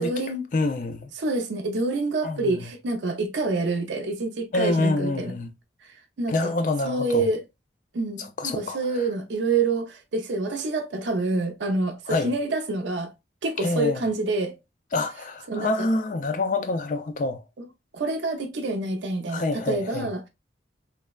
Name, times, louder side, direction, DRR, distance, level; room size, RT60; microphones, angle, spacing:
voice 1, 0.0-0.5 1.2-5.3 5.8-6.5 6.8-7.4 7.9-13.1 13.4-14.6 15.5-15.9 17.6-17.7 17.9-20.3, right 3 dB, 75° right, 0.5 m, -27 dB
voice 2, 0.5-1.1 2.2-2.6 4.5-5.5 6.3-7.3 8.2-8.8 12.1-12.3 13.6-14.0 14.9-17.4 19.3-20.1, left 2 dB, 45° left, 0.4 m, -26 dB
3.1 x 2.0 x 2.2 m
head